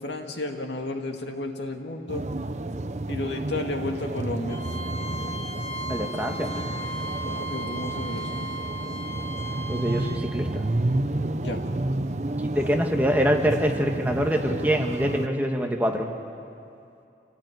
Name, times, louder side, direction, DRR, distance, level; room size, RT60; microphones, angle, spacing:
voice 1, 0.0-2.2 3.1-4.6 7.3-8.3 11.4-11.6, left 2 dB, 80° left, 3 dB, 2.2 m, -32 dB
sound 1, 2.1-15.3, right 2 dB, 40° right, 0.7 m, -30 dB
Bowed string instrument, 4.5-10.2, right 1 dB, 15° left, 6.4 m, -36 dB
voice 2, 5.9-6.6 9.7-10.6 12.4-16.1, equal, 10° right, 2 dB, 1.6 m, -25 dB
27.5 x 17.5 x 9.4 m, 2.7 s
head